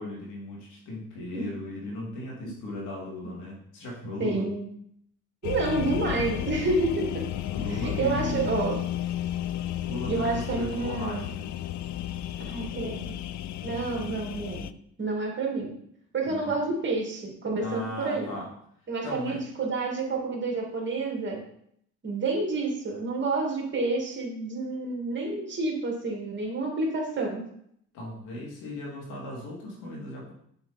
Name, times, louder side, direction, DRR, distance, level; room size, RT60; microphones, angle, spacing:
voice 1, 0.0-4.5 7.5-8.6 9.8-11.4 16.2-16.5 17.6-18.5 19.0-19.4 27.9-30.3, left 1 dB, 90° left, -3 dB, 2.7 m, -37 dB
voice 2, 4.2-4.7 5.4-7.3 7.8-8.8 10.1-11.3 12.4-13.1 13.6-14.7 15.0-15.8 16.1-18.4 18.9-21.4 22.0-27.4, right 3 dB, 40° right, 0 dB, 2.3 m, -29 dB
sound 1, 5.4-14.7, left 12 dB, 65° left, 0.4 m, -33 dB
7.0 x 4.6 x 4.3 m, 0.70 s
cardioid pair, 90°, 30 cm